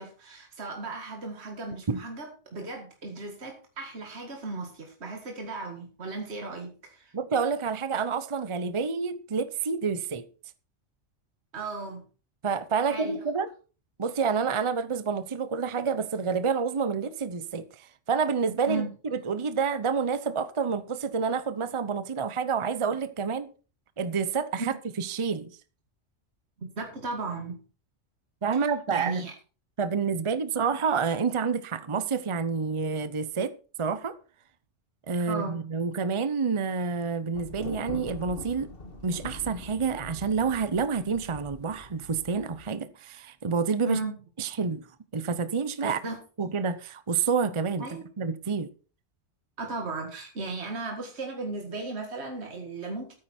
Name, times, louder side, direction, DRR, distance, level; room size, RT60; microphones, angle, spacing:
voice 1, 0.0-7.1 11.5-12.1 12.8-13.2 18.7-18.9 24.6-24.8 26.6-27.6 28.5-29.3 35.3-35.7 43.9-44.2 45.8-46.2 47.8-48.1 49.6-53.1, right 3 dB, 60° right, 2.2 m, -36 dB
voice 2, 7.1-10.3 12.4-13.5 14.0-23.5 24.0-25.5 28.4-29.3 29.8-33.5 33.8-34.1 35.1-38.7 39.0-44.0 44.4-44.8 45.1-46.0 46.4-47.8 48.2-48.7, right 5 dB, 30° right, 0.7 m, -28 dB
Thunder, 37.3-42.7, left 2 dB, 50° left, 2.1 m, -43 dB
13.5 x 9.7 x 4.4 m
omnidirectional pair, 1.2 m